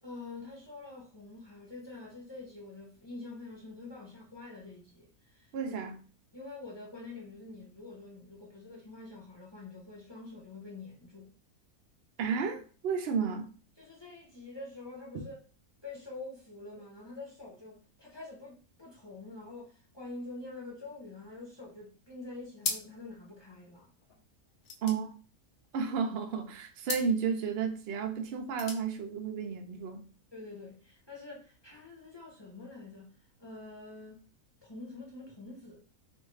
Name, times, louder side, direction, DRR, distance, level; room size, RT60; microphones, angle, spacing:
voice 1, 0.0-5.7 6.3-11.3 13.8-15.4 15.8-23.9 30.3-33.1 33.4-34.2 34.6-35.8, left 3 dB, 25° left, 0.6 m, -46 dB
voice 2, 5.5-6.0 12.2-13.5 24.8-25.1 25.7-30.1, right 6 dB, 70° right, 0.6 m, -32 dB
sound 1, 22.6-23.2 23.5-23.6 23.8-26.0 26.8-27.2 28.3-28.9, left 4 dB, 60° left, 0.9 m, -38 dB
2.6 x 2.5 x 3.1 m
omnidirectional pair, 1.6 m